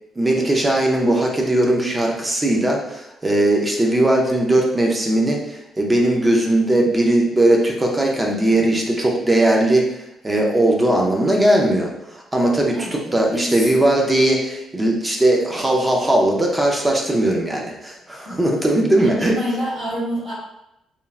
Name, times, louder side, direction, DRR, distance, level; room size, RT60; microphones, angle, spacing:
voice 1, 0.2-19.3, right 1 dB, 10° right, 0 dB, 0.4 m, -19 dB
voice 2, 8.4-8.8 12.7-13.9 18.2-18.4 19.0-20.3, equal, 45° right, -9 dB, 1.5 m, -28 dB
3.1 x 2.3 x 2.3 m, 0.84 s
cardioid pair, 175°, 0 cm